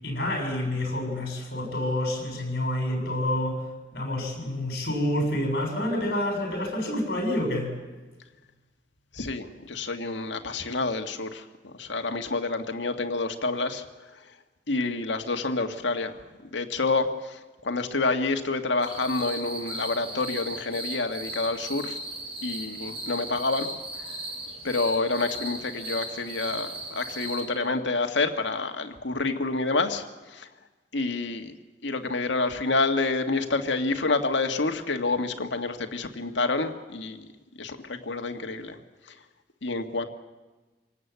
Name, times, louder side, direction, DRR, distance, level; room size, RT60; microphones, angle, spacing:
voice 1, 0.0-3.6 3.9-7.7, left 1 dB, 55° left, 2 dB, 6.9 m, -28 dB
voice 2, 9.1-13.9 14.7-16.1 16.5-22.0 22.4-23.7 24.6-30.5 30.9-31.5 31.8-37.3 37.6-38.8 39.6-40.1, left 3 dB, 85° left, 6 dB, 1.9 m, -28 dB
sound 1, 18.8-27.4, right 1 dB, 30° right, 5.7 m, -37 dB
26.5 x 18.5 x 8.3 m, 1.2 s
head